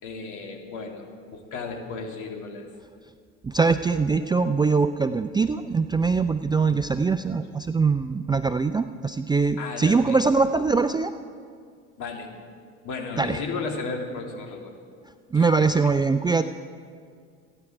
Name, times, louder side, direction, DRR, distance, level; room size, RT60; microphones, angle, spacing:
voice 1, 0.0-2.7 9.6-10.2 12.0-12.3 12.8-14.7 15.3-15.9, left 4 dB, 55° left, 2 dB, 3.0 m, -34 dB
voice 2, 3.4-11.1 13.2-13.4 15.3-16.4, right 4 dB, 10° right, 10 dB, 0.4 m, -22 dB
28.0 x 10.0 x 4.6 m, 2.2 s
hypercardioid pair, 75°, 37 cm